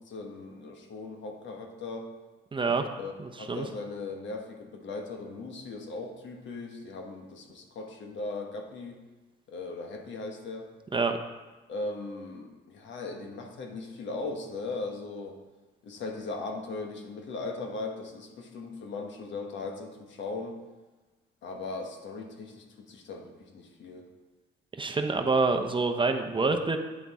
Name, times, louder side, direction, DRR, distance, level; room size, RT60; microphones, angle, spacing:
voice 1, 0.0-2.1 3.0-3.1 3.4-9.0 9.5-10.7 11.7-15.4 15.8-20.6 21.4-24.1, left 3 dB, 70° left, 3 dB, 1.3 m, -38 dB
voice 2, 2.5-2.9 3.2-3.7 10.9-11.2 24.8-26.8, right 3 dB, 25° right, 5 dB, 0.8 m, -27 dB
8.6 x 5.9 x 4.2 m, 1.2 s
cardioid pair, 90°, 20 cm